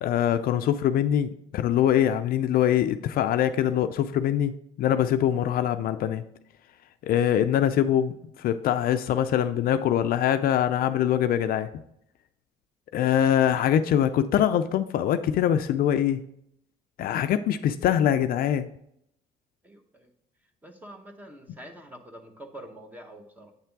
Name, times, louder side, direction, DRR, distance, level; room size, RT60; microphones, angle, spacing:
voice 1, 0.0-6.2 7.0-11.7 12.9-16.2 17.0-18.7, left 10 dB, 60° left, 10 dB, 0.4 m, -23 dB
voice 2, 19.6-20.1 20.6-23.5, right 1 dB, 10° right, 5 dB, 0.9 m, -45 dB
8.0 x 3.4 x 4.5 m, 0.73 s
cardioid pair, 110°, 17 cm